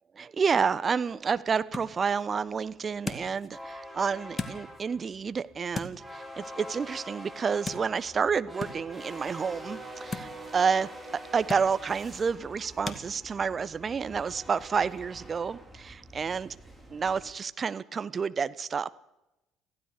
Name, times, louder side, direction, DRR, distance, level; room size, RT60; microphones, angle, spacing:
voice 1, 0.2-10.9 11.3-16.5 16.9-19.0, right 6 dB, 35° right, 16 dB, 0.9 m, -29 dB
sound 1, 0.5-13.0, left 3 dB, 25° left, 2.3 m, -43 dB
sound 2, 3.5-17.3, equal, 5° right, 4.8 m, -45 dB
25.5 x 16.0 x 6.8 m, 0.95 s
figure-of-eight pair, 55°, 0 cm